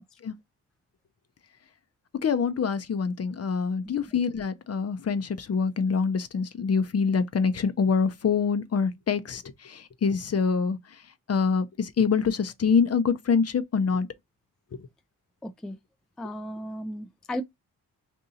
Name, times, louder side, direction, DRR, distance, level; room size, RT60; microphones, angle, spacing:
voice 1, 2.2-11.0 11.3-14.1 14.8-14.9, left 5 dB, 40° left, 0.6 m, -25 dB
voice 2, 15.4-15.8 16.2-17.4, left 1 dB, ahead, 0.3 m, -35 dB
2.8 x 2.6 x 3.8 m
supercardioid pair, 55°, 37 cm